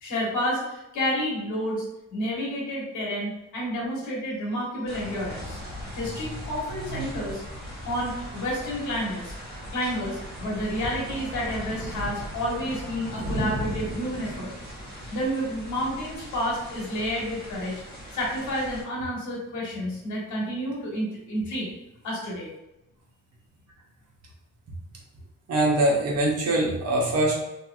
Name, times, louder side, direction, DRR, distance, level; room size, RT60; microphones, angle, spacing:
voice 1, 0.0-1.8 2.1-5.6 5.9-7.4 7.8-9.3 9.7-14.5 15.1-17.7 18.1-21.7 22.0-22.5, equal, 75° left, -4 dB, 1.4 m, -30 dB
sound 1, 4.9-18.8, equal, 35° right, 1.2 m, -37 dB
voice 2, 25.5-27.4, right 1 dB, 55° right, -3 dB, 1.1 m, -23 dB
3.0 x 2.9 x 2.4 m, 0.92 s
cardioid pair, 90°, 30 cm